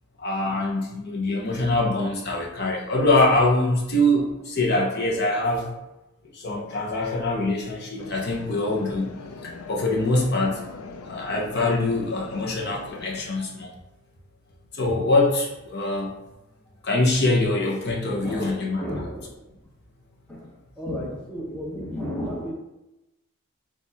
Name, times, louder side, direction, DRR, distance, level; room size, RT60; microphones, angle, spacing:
voice 1, 0.2-5.7 6.3-9.1 9.4-10.6 11.1-13.7 14.7-16.1 16.8-18.8, left 2 dB, 50° left, -2 dB, 0.8 m, -24 dB
sound 1, 8.0-13.2, left 4 dB, 85° left, 0.4 m, -40 dB
voice 2, 18.2-19.5 20.3-22.5, equal, 5° left, -5 dB, 0.8 m, -33 dB
4.4 x 2.4 x 4.0 m, 0.94 s
head